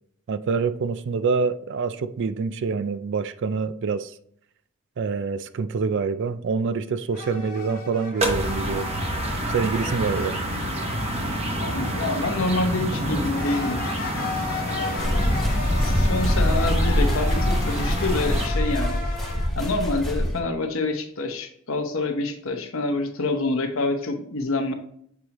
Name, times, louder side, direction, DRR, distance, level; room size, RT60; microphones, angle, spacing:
voice 1, 0.3-4.1 5.0-8.9 9.5-10.4, right 5 dB, 55° right, 0.4 m, -26 dB
sound 1, 7.1-19.5, left 3 dB, 40° left, 1.1 m, -35 dB
sound 2, 8.2-18.5, right 1 dB, 30° right, 0.9 m, -29 dB
voice 2, 11.6-13.8 14.7-15.5 15.8-19.0 19.6-24.7, left 2 dB, 60° left, 0.9 m, -27 dB
sound 3, 15.0-20.4, equal, ahead, 0.8 m, -23 dB
7.0 x 4.7 x 3.0 m
head